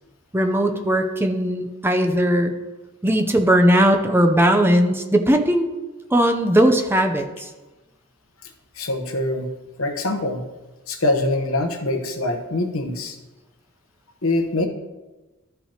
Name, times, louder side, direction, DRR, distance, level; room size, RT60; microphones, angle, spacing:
voice 1, 0.3-2.5 3.0-5.7 6.1-7.5, equal, 10° right, 5 dB, 0.6 m, -18 dB
voice 2, 8.4-9.5 9.8-10.4 10.9-13.2 14.2-14.7, left 2 dB, 80° left, 5 dB, 1.1 m, -24 dB
13.0 x 5.5 x 2.9 m, 1.1 s
head